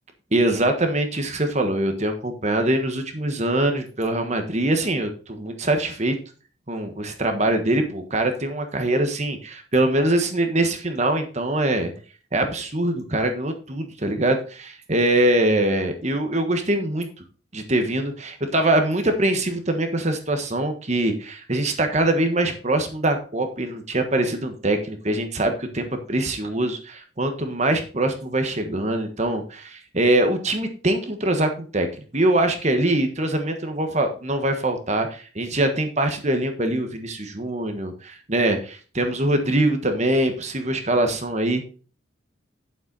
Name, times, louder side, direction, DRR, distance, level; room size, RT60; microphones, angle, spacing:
voice 1, 0.3-6.2 6.7-11.9 12.3-17.1 17.5-31.9 32.1-41.6, right 1 dB, 35° right, 6 dB, 1.4 m, -23 dB
9.0 x 7.3 x 4.1 m, 0.37 s
head